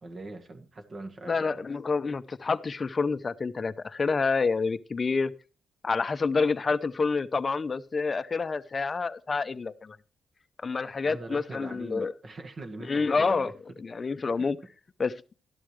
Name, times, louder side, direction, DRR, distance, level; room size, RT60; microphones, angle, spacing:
voice 1, 0.0-1.6 11.0-13.5 14.4-14.5, right 2 dB, 40° right, 1.8 m, -42 dB
voice 2, 1.3-5.3 5.8-10.0 10.6-12.1 12.9-13.5 13.8-14.6 15.0-15.1, left 4 dB, 30° left, 0.7 m, -28 dB
13.0 x 11.5 x 3.3 m
cardioid pair, 125°, 0 cm